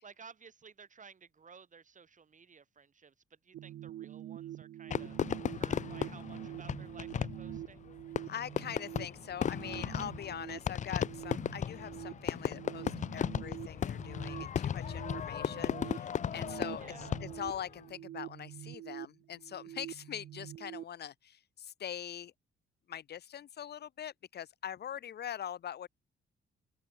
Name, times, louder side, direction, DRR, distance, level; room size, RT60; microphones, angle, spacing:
voice 1, 0.0-5.2 5.5-7.8 16.8-17.2, right 6 dB, 40° right, 5.1 m, -55 dB
sound 1, 3.5-20.8, right 12 dB, 65° right, 0.6 m, -46 dB
Fireworks, 4.9-17.6, left 8 dB, 40° left, 0.5 m, -36 dB
voice 2, 8.3-22.3 22.9-25.9, left 9 dB, 55° left, 0.9 m, -43 dB
cardioid pair, 90°, 20 cm